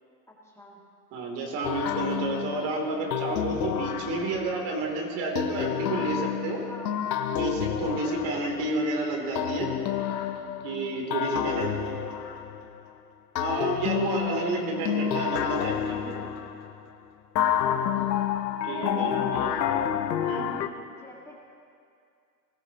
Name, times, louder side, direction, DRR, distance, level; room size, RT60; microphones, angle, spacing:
voice 1, 0.4-0.8 6.7-6.9 7.8-8.2 11.1-11.7 17.8-18.3 18.7-19.8 21.0-21.5, left 1 dB, 5° left, -4 dB, 1.7 m, -45 dB
voice 2, 1.1-6.6 7.3-9.7 10.6-11.7 13.4-16.1 18.6-19.5 20.2-20.5, right 2 dB, 50° right, 1 dB, 2.9 m, -30 dB
sound 1, 1.6-4.7 5.3-8.9 9.3-12.9 13.3-16.8 17.3-20.7, left 9 dB, 85° left, 0.8 m, -29 dB
20.0 x 14.0 x 2.9 m, 2.3 s
hypercardioid pair, 105°, 50 cm